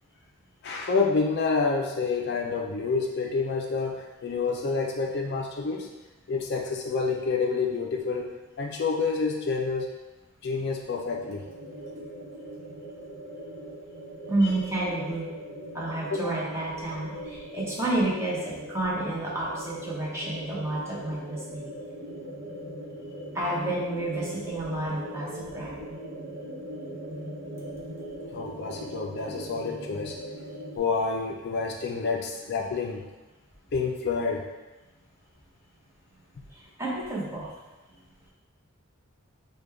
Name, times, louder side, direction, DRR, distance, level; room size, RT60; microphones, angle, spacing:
voice 1, 0.6-5.9 6.3-9.9 10.4-11.4 16.1-16.3 28.3-30.2 30.8-33.0 33.7-34.5, left 4 dB, 50° left, 1 dB, 0.3 m, -28 dB
sound 1, 11.0-30.8, equal, 65° right, 0.8 m, -40 dB
voice 2, 14.3-15.3 15.7-21.7 23.3-25.8 36.8-37.5, right 2 dB, 15° right, -6 dB, 0.8 m, -30 dB
5.0 x 2.2 x 3.4 m, 1.1 s
head